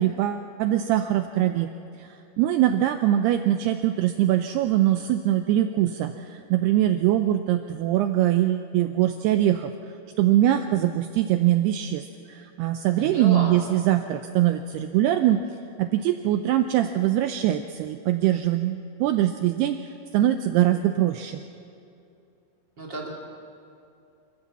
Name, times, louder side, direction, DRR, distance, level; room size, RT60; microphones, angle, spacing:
voice 1, 0.0-1.7 2.0-2.1 2.4-9.7 10.2-15.4 15.8-19.8 20.1-21.4, right 12 dB, 90° right, 8 dB, 2.3 m, -22 dB
voice 2, 13.0-13.6 22.8-23.1, right 1 dB, 35° right, -1 dB, 2.2 m, -32 dB
28.0 x 14.0 x 7.3 m, 2.7 s
omnidirectional pair, 5.4 m